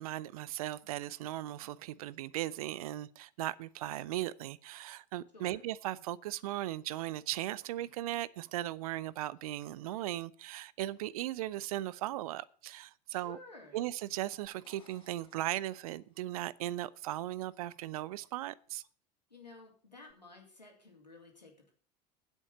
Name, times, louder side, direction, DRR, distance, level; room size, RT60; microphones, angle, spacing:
voice 1, 0.0-13.4 13.7-18.8, right 14 dB, 60° right, 0.6 m, -37 dB
voice 2, 13.1-13.8 19.3-21.7, left 3 dB, 85° left, 3.1 m, -54 dB
sound 1, 14.4-16.4 20.1-20.2, left 5 dB, 25° left, 1.9 m, -65 dB
9.8 x 8.2 x 6.7 m
figure-of-eight pair, 75°, 21 cm